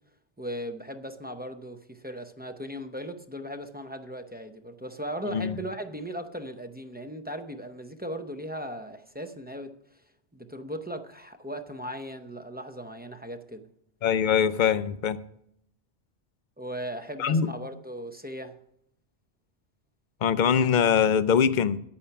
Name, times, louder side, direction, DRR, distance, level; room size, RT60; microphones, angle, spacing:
voice 1, 0.4-9.7 10.3-13.7 16.6-18.5, equal, 10° right, 7 dB, 0.6 m, -37 dB
voice 2, 14.0-15.2 17.2-17.5 20.2-21.8, left 7 dB, 55° left, 14 dB, 0.7 m, -23 dB
9.8 x 8.8 x 5.8 m, 0.73 s
omnidirectional pair, 1.1 m